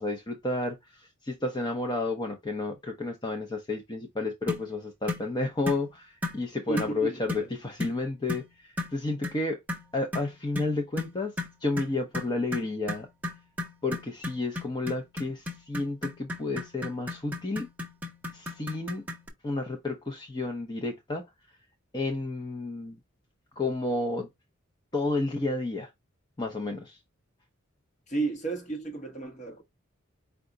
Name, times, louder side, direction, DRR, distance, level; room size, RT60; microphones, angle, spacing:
voice 1, 0.0-9.6 9.9-11.3 11.6-13.1 13.8-17.7 18.3-19.0 19.4-21.2 21.9-23.0 23.6-24.3 24.9-25.9 26.4-27.0, left 2 dB, 20° left, 0.6 m, -31 dB
sound 1, 4.5-4.7 5.1-5.3 5.7-5.9 6.2-6.4 6.8-7.0 7.3-7.5 7.8-8.0 8.3-8.5 8.8-9.0 9.2-9.4 9.7-19.3, left 2 dB, 10° right, 0.9 m, -35 dB
voice 2, 6.7-7.1 28.1-29.6, right 3 dB, 35° left, 1.0 m, -32 dB
4.8 x 2.2 x 3.8 m
head